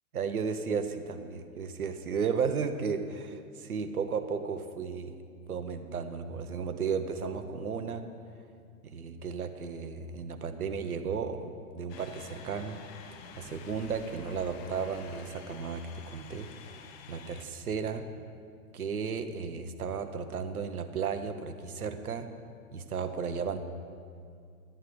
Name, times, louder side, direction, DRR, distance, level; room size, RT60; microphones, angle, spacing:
voice 1, 0.1-5.1 5.5-8.1 8.8-12.8 13.4-18.1 18.7-22.3 22.7-23.6, right 6 dB, 75° right, 9 dB, 1.0 m, -34 dB
sound 1, 11.9-17.5, left 6 dB, 20° left, 0.4 m, -49 dB
12.0 x 9.0 x 5.2 m, 2.3 s
figure-of-eight pair, 105°, 44 cm